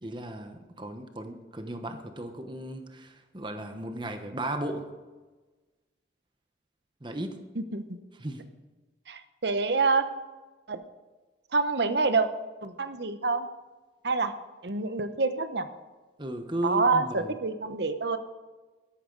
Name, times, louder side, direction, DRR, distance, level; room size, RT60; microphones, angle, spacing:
voice 1, 0.0-4.9 7.0-7.4 8.2-8.4 16.2-17.3, right 1 dB, 25° right, 7 dB, 1.1 m, -35 dB
voice 2, 7.6-8.0 9.1-10.1 10.7-10.8 11.5-12.3 12.6-13.5 14.0-14.3 14.6-15.7 16.6-18.2, right 4 dB, 65° right, 10 dB, 0.9 m, -27 dB
13.0 x 11.5 x 4.0 m, 1.3 s
head